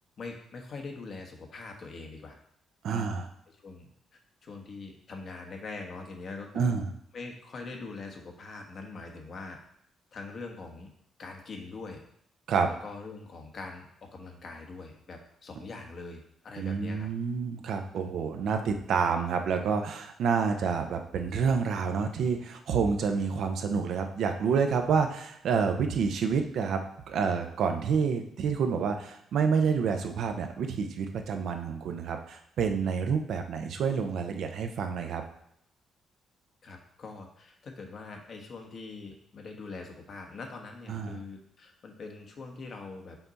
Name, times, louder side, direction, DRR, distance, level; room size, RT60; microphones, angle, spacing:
voice 1, 0.2-2.4 2.9-3.2 3.5-6.8 7.1-9.6 10.1-10.9 11.2-12.0 12.7-17.1 36.6-43.2, left 3 dB, 50° left, 2 dB, 1.2 m, -43 dB
voice 2, 2.8-3.2 6.5-6.9 12.5-12.7 16.6-26.8 27.1-35.2 40.9-41.2, right 6 dB, 70° right, 5 dB, 0.7 m, -28 dB
5.8 x 4.5 x 4.0 m, 0.72 s
cardioid pair, 90°, 0 cm